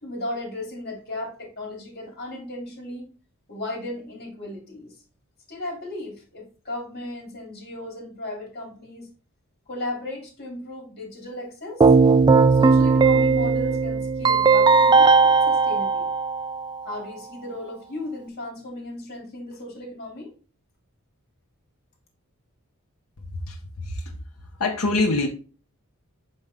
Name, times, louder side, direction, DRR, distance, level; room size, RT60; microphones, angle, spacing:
voice 1, 0.0-3.1 3.5-5.0 5.5-9.1 9.7-11.8 12.5-16.1 16.8-20.3, left 1 dB, 45° left, 2.9 m, -35 dB
Keyboard (musical), 11.8-16.8, right 4 dB, 20° right, 0.3 m, -17 dB
voice 2, 23.3-24.1 24.6-25.3, left 2 dB, 75° left, 0.9 m, -25 dB
5.4 x 5.2 x 3.5 m
head